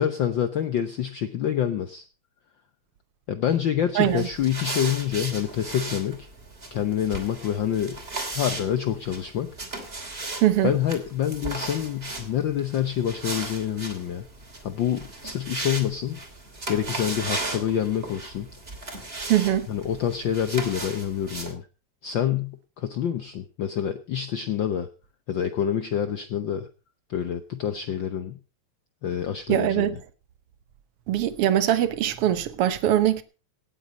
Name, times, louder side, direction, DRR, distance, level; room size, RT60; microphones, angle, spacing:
voice 1, 0.0-2.0 3.3-6.3 6.7-8.0 8.3-9.5 10.6-14.3 14.6-16.2 16.7-18.5 19.7-21.7 22.0-24.9 25.3-26.7 27.1-28.4 29.0-29.9, left 9 dB, 90° left, 1.0 m, -27 dB
sound 1, 4.0-21.5, right 2 dB, 20° right, 2.8 m, -36 dB
voice 2, 4.0-4.3 10.4-10.7 19.3-19.7 29.5-30.0 31.1-33.2, right 11 dB, 65° right, 1.7 m, -22 dB
17.5 x 8.3 x 5.2 m
omnidirectional pair, 3.3 m